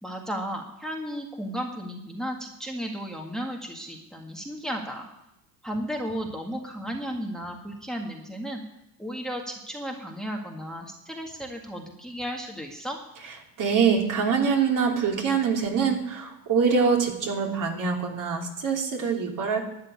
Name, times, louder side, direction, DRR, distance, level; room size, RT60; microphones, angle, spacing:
voice 1, 0.0-5.1 5.6-8.6 9.0-13.0, equal, ahead, 1 dB, 1.8 m, -34 dB
voice 2, 13.6-19.6, right 6 dB, 40° right, 1 dB, 3.2 m, -24 dB
12.5 x 8.9 x 8.6 m, 0.89 s
supercardioid pair, 95°, 48 cm